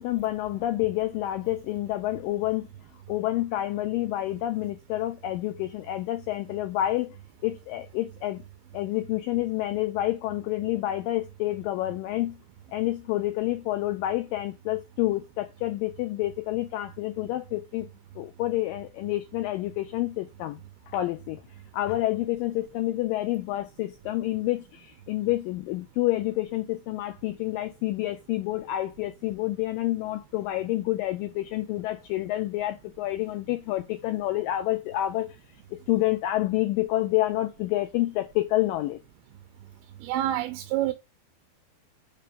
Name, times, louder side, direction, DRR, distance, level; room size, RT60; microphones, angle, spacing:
voice 1, 0.0-2.7 3.1-7.2 7.4-8.4 8.7-12.4 12.7-17.9 18.2-20.6 20.9-21.4 21.7-35.4 35.9-39.0, left 15 dB, 90° left, 1.9 m, -28 dB
voice 2, 40.0-40.9, right 13 dB, 85° right, 2.6 m, -27 dB
5.9 x 4.4 x 5.1 m
omnidirectional pair, 4.5 m